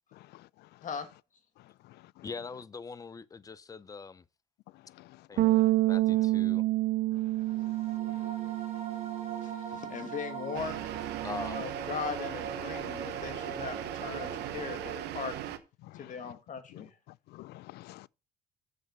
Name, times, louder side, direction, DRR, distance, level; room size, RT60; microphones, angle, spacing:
voice 1, 0.2-0.5 2.2-2.3 5.0-5.6 15.8-16.3 16.7-16.8 17.3-18.1, left 18 dB, 75° left, 0.4 m, -50 dB
voice 2, 2.2-4.2 5.3-6.6 11.2-11.6, left 5 dB, 20° left, 0.6 m, -42 dB
Bass guitar, 5.4-11.6, right 17 dB, 60° right, 0.4 m, -29 dB
sound 1, 7.4-15.6, right 5 dB, 40° right, 3.0 m, -42 dB
voice 3, 9.4-11.0 11.5-15.4 16.0-16.9, left 7 dB, 50° left, 2.0 m, -39 dB
sound 2, 10.5-15.6, right 13 dB, 80° right, 1.0 m, -39 dB
7.3 x 6.4 x 5.3 m
cardioid pair, 110°, 17 cm